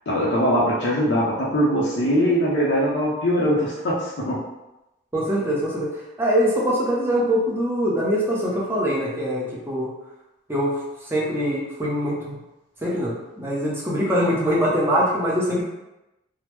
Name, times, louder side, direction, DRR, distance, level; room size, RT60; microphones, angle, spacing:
voice 1, 0.1-4.4, equal, 65° left, -6 dB, 0.6 m, -21 dB
voice 2, 5.1-5.9 6.2-9.9 10.5-10.7 11.1-12.4 12.8-15.6, equal, 10° right, -5 dB, 0.6 m, -23 dB
3.4 x 2.0 x 3.0 m, 0.97 s
head